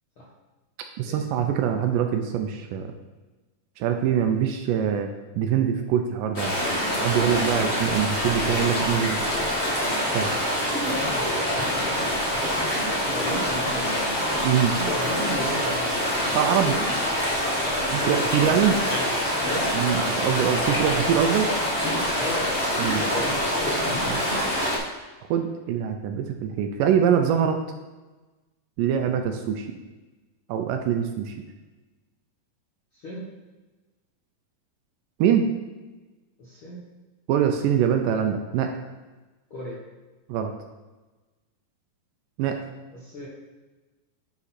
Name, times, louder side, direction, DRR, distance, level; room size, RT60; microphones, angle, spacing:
voice 1, 1.0-2.9 3.8-5.1 5.4-6.6 7.0-9.2 10.1-10.3 14.4-14.7 16.3-16.8 17.9-18.8 19.7-21.5 22.8-23.0 24.1-24.3 25.3-27.6 28.8-29.7 30.5-31.3 35.2-35.5 37.3-38.7 40.3-40.5 42.4-42.6, right 8 dB, 80° right, 5 dB, 2.1 m, -23 dB
sound 1, 6.3-24.8, equal, 80° left, 0.5 m, -25 dB
voice 2, 7.6-7.9 10.7-12.2 12.8-14.2 14.7-16.1 17.6-19.7 22.2-22.5 22.9-23.4 32.9-33.3 36.4-36.8 39.5-39.8 42.9-43.3, left 1 dB, 60° left, -6 dB, 1.3 m, -35 dB
9.7 x 4.2 x 4.2 m, 1.2 s
omnidirectional pair, 4.1 m